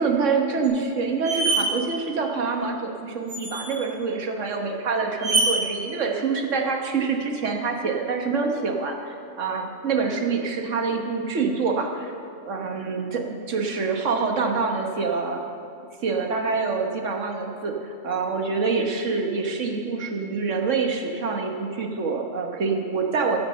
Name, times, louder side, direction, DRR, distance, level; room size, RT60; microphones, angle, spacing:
voice 1, 0.0-12.1 12.5-15.4 16.0-23.4, right 4 dB, 85° right, 2 dB, 1.5 m, -26 dB
sound 1, 0.6-0.7 1.2-1.6 3.3-3.8 5.2-5.5, right 3 dB, 35° right, 3.4 m, -24 dB
16.0 x 6.1 x 6.7 m, 2.4 s
omnidirectional pair, 1.2 m